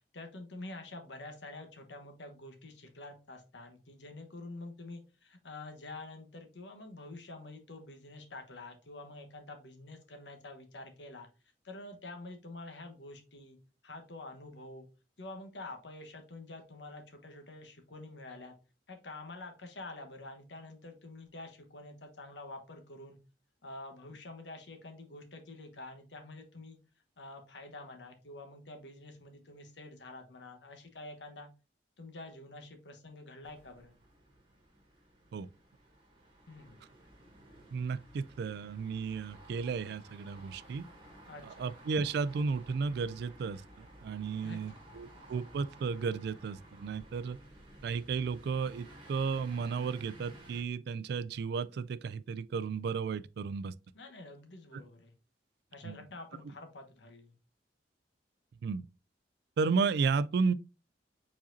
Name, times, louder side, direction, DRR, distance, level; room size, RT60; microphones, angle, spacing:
voice 1, 0.1-11.3 11.6-13.6 13.8-14.9 15.2-18.6 18.9-23.2 23.6-26.8 27.2-31.5 32.0-34.0 36.5-36.8 41.3-41.4 44.4-45.2 53.9-55.1 55.7-57.3, left 2 dB, 85° left, 1.2 m, -47 dB
sound 1, 33.4-50.6, right 1 dB, 30° right, 1.5 m, -55 dB
voice 2, 37.7-40.8 41.6-47.4 47.8-53.7 54.7-54.8 55.8-56.0 58.6-58.8 59.6-60.5, right 5 dB, 65° right, 0.3 m, -33 dB
4.9 x 4.2 x 2.6 m
head